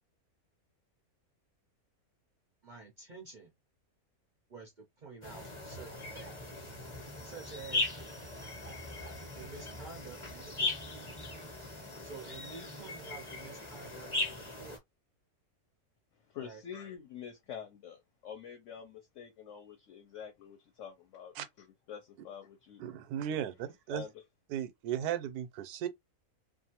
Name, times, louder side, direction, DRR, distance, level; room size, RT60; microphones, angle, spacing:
voice 1, 2.6-3.5 4.5-6.7 7.2-7.9 9.4-10.8 12.0-14.8 16.4-16.6, right 4 dB, 65° right, 0.4 m, -49 dB
sound 1, 5.2-14.8, left 2 dB, 25° left, 0.8 m, -39 dB
voice 2, 16.3-21.3 21.9-22.8 23.9-24.1, left 8 dB, 60° left, 0.9 m, -46 dB
voice 3, 22.8-24.0 24.5-25.9, right 10 dB, 85° right, 1.1 m, -36 dB
2.6 x 2.4 x 2.8 m
omnidirectional pair, 1.6 m